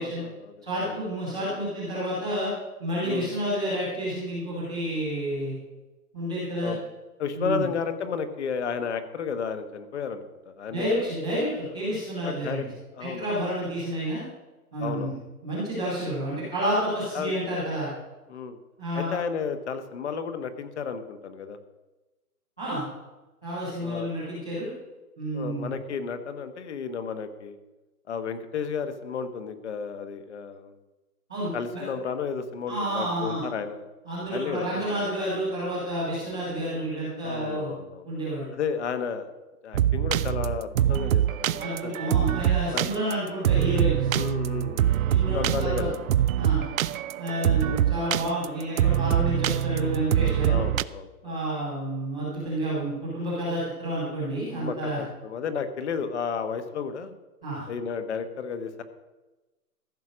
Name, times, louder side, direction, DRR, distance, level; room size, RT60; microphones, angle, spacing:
voice 1, 0.0-1.0 3.0-3.3 6.6-6.8 7.2-11.1 12.2-12.6 12.9-13.5 14.8-15.1 17.1-17.3 18.3-18.6 18.9-21.6 23.8-24.1 25.3-27.6 28.1-30.7 31.5-33.8 34.3-35.2 37.2-38.1 38.5-39.3 39.6-42.2 42.7-42.9 44.1-46.1 47.3-47.8 50.5-51.4 54.6-57.1 57.7-58.8, left 6 dB, 45° left, 10 dB, 1.3 m, -33 dB
voice 2, 0.6-2.5 2.8-5.5 6.1-6.7 7.3-7.6 10.7-12.7 13.0-14.2 14.7-15.1 15.4-17.9 18.8-19.2 22.6-22.9 23.4-24.7 25.2-25.7 31.3-31.8 32.7-33.4 34.0-37.7 38.0-38.5 41.6-44.1 45.1-45.9 46.4-46.6 47.2-50.6 51.2-55.0 57.4-57.6, right 1 dB, 5° right, -15 dB, 0.5 m, -30 dB
sound 1, 39.7-50.8, right 11 dB, 65° right, 0.5 m, -24 dB
14.5 x 6.4 x 6.2 m, 1.1 s
hypercardioid pair, 165°, 46 cm